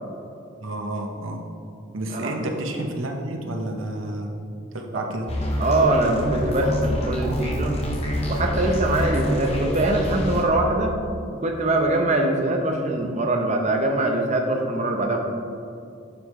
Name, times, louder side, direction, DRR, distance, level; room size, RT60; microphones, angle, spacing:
voice 1, 0.6-1.4 1.9-5.4, right 1 dB, 85° right, 2 dB, 1.0 m, -30 dB
sound 1, 5.3-10.4, equal, 30° left, 1.1 m, -26 dB
voice 2, 5.6-7.9 8.3-11.0 11.3-15.2, right 2 dB, 35° right, 2 dB, 0.8 m, -23 dB
9.7 x 7.1 x 3.2 m, 2.6 s
head